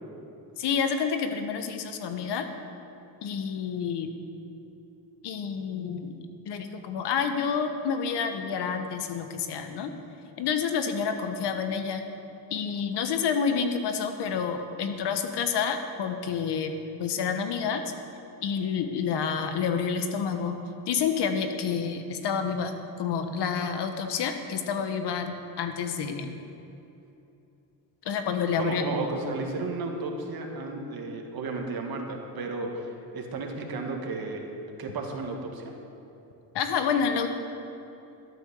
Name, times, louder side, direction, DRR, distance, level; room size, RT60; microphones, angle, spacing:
voice 1, 0.6-2.5 3.2-4.1 5.2-9.9 10.4-12.0 12.5-17.8 18.4-20.6 20.9-26.4 28.0-28.8 36.5-37.3, left 6 dB, 70° left, 7 dB, 1.3 m, -29 dB
voice 2, 28.6-32.9 33.1-34.4 34.8-35.7, right 3 dB, 55° right, 2 dB, 1.9 m, -33 dB
13.0 x 9.0 x 7.0 m, 2.9 s
cardioid pair, 105°, 42 cm